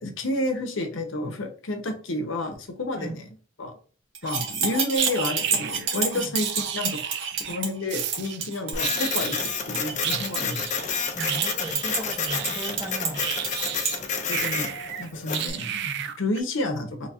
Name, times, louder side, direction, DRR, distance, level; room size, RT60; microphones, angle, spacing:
voice 1, 0.0-3.2 3.6-3.8 4.2-6.5 6.7-10.6 14.3-14.7 15.0-17.1, left 1 dB, 70° left, 5 dB, 0.7 m, -30 dB
sound 1, 4.1-14.0, right 5 dB, 75° right, 0.9 m, -30 dB
sound 2, 4.9-5.9 6.4-7.6 7.9-8.5 8.8-9.7 10.0-14.0 14.3-16.4, right 10 dB, 55° right, 0.3 m, -33 dB
Printer, 8.7-15.5, left 6 dB, 35° left, 0.5 m, -30 dB
voice 2, 11.1-13.3, right 1 dB, 15° right, 2 dB, 0.7 m, -36 dB
3.1 x 2.4 x 4.1 m, 0.40 s
head